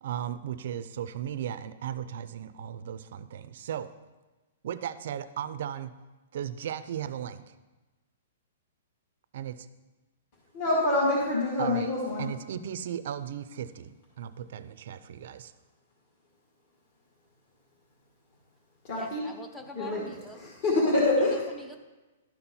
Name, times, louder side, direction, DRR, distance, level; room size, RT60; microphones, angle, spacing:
voice 1, 0.0-3.9 4.6-5.9 6.3-7.4 9.3-9.7 11.6-11.9 12.2-13.9 14.2-15.5, right 9 dB, 50° right, 13 dB, 0.5 m, -36 dB
voice 2, 10.5-12.3 18.8-19.2 19.7-20.1 20.4-21.4, left 2 dB, 35° left, -6 dB, 1.9 m, -26 dB
voice 3, 18.9-20.4 21.5-21.8, left 2 dB, 5° left, 5 dB, 0.5 m, -44 dB
11.5 x 4.4 x 5.5 m, 1.2 s
hypercardioid pair, 170°, 0 cm